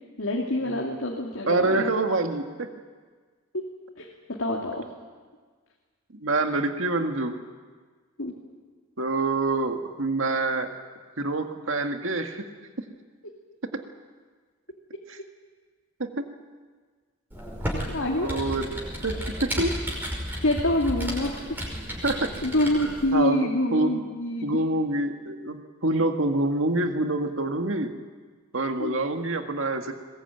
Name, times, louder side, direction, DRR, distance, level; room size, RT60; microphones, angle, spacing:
voice 1, 0.2-1.9 3.5-3.7 4.0-4.9 8.2-8.3 17.7-18.3 20.4-21.6 22.4-24.6 28.8-29.0, left 1 dB, 75° left, -1 dB, 2.7 m, -26 dB
voice 2, 1.5-2.7 6.1-7.3 9.0-10.7 11.2-12.5 13.7-13.8 15.1-15.2 16.0-16.3 18.2-18.7 19.0-19.8 22.0-22.3 23.1-23.9 24.4-27.9 28.5-29.9, right 2 dB, 70° right, 5 dB, 2.0 m, -26 dB
Computer keyboard, 17.3-23.1, equal, 10° right, 5.4 m, -33 dB
22.0 x 21.0 x 9.1 m, 1.5 s
head